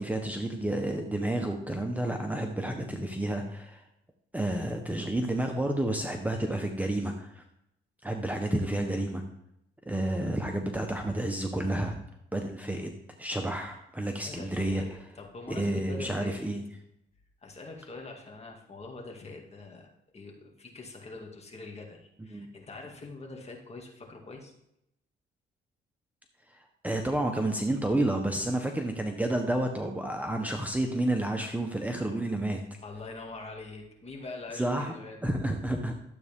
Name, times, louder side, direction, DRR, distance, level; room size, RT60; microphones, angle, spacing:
voice 1, 0.0-3.8 4.3-7.4 8.0-9.2 9.9-12.0 12.3-14.8 15.5-16.6 22.3-22.5 26.5-32.6 34.5-34.9 35.2-35.9, right 1 dB, 10° right, 3 dB, 1.0 m, -30 dB
voice 2, 9.9-10.4 14.2-16.3 17.4-19.9 20.1-24.5 32.8-35.2, left 3 dB, 30° left, 0 dB, 2.5 m, -44 dB
12.5 x 8.0 x 3.7 m, 0.80 s
cardioid pair, 90°, 20 cm